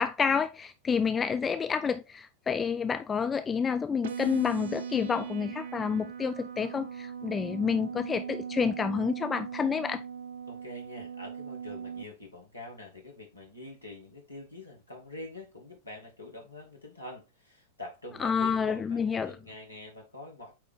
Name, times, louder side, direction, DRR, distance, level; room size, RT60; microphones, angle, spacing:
voice 1, 0.0-10.0 18.2-19.3, left 6 dB, 20° left, 0.6 m, -29 dB
sound 1, 4.0-12.0, right 7 dB, 60° right, 0.6 m, -39 dB
voice 2, 10.5-20.5, left 2 dB, 85° left, 2.2 m, -45 dB
8.6 x 3.6 x 3.6 m
figure-of-eight pair, 90°, 0 cm